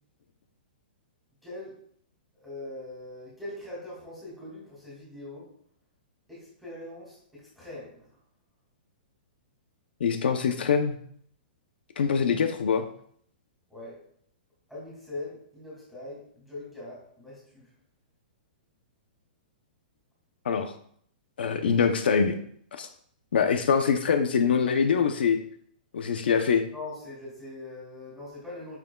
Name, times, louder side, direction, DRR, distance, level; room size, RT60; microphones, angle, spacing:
voice 1, 1.4-1.7 2.4-5.4 6.3-8.1 13.7-14.0 14.7-17.7 26.7-28.8, left 2 dB, ahead, -7 dB, 2.4 m, -41 dB
voice 2, 10.0-11.0 12.0-12.9 20.4-20.7 21.4-22.4 22.7-22.9 23.3-25.4 25.9-26.6, left 6 dB, 80° left, 7 dB, 0.7 m, -24 dB
8.9 x 5.9 x 2.3 m, 0.63 s
hypercardioid pair, 180°, 5 cm